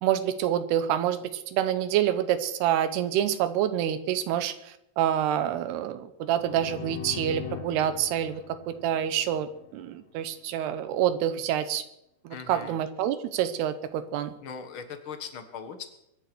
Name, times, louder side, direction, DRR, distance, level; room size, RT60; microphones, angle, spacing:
voice 1, 0.0-8.4 8.7-11.8 12.3-14.3, right 10 dB, 85° right, 11 dB, 3.0 m, -27 dB
sound 1, 6.2-10.0, left 13 dB, 70° left, 2.5 m, -41 dB
voice 2, 12.3-12.8 14.4-15.9, left 6 dB, 55° left, 7 dB, 1.5 m, -39 dB
23.5 x 9.9 x 6.1 m, 0.80 s
omnidirectional pair, 4.6 m